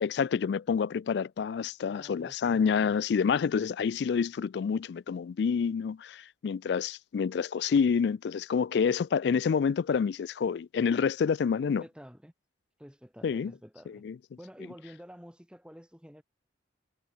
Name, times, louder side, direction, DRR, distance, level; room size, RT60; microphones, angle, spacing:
voice 1, 0.0-11.8 13.2-13.5 13.9-14.2, left 6 dB, 65° left, 0.3 m, -28 dB
voice 2, 1.9-2.9 11.5-12.3 12.8-14.0 14.4-16.2, equal, 5° right, 3.2 m, -49 dB
head